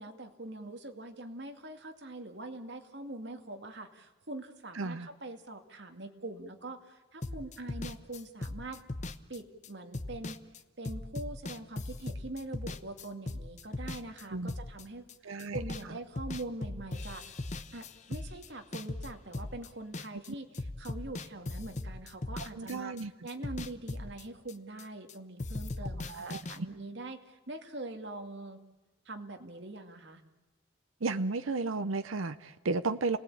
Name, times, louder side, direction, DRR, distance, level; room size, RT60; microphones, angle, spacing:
voice 1, 0.0-8.8 9.3-10.4 10.8-17.2 17.7-22.9 23.2-28.6 29.1-30.2 32.8-32.9, right 2 dB, 60° right, 5 dB, 2.3 m, -43 dB
voice 2, 4.7-5.1 14.3-14.5 15.2-15.6 22.5-23.1 25.8-26.4 31.0-33.2, right 3 dB, 85° right, 10 dB, 0.7 m, -33 dB
sound 1, 7.2-15.9 16.2-20.3 20.5-25.1 25.4-26.6, left 2 dB, 35° left, 0.9 m, -39 dB
29.0 x 19.0 x 8.6 m, 1.2 s
head